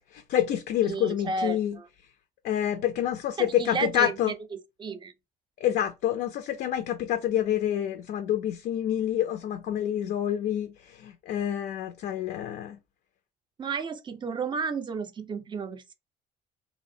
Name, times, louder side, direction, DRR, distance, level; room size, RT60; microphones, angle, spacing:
voice 1, 0.1-1.8 2.4-4.3 5.6-12.8, left 11 dB, 65° left, 0.4 m, -27 dB
voice 2, 0.8-1.9 3.4-4.2 4.5-5.1 13.6-15.9, right 4 dB, 30° right, 0.4 m, -32 dB
2.6 x 2.0 x 2.6 m
cardioid pair, 110°, 17 cm